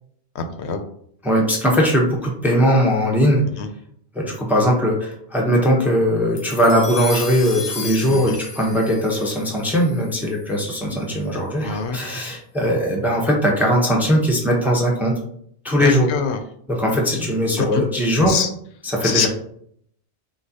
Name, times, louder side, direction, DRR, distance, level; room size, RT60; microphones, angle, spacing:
voice 1, 0.3-0.8 3.6-3.7 8.1-8.4 11.6-12.0 15.8-16.4 16.9-17.3 17.6-17.8 18.2-18.5 19.0-19.3, left 6 dB, 75° left, 7 dB, 0.8 m, -24 dB
voice 2, 1.2-3.4 4.1-15.1 15.6-16.1 16.7-18.3 18.8-19.3, equal, ahead, -2 dB, 0.7 m, -19 dB
sound 1, 6.4-10.9, left 4 dB, 45° left, 0.3 m, -35 dB
6.1 x 2.3 x 2.7 m, 0.66 s
omnidirectional pair, 1.1 m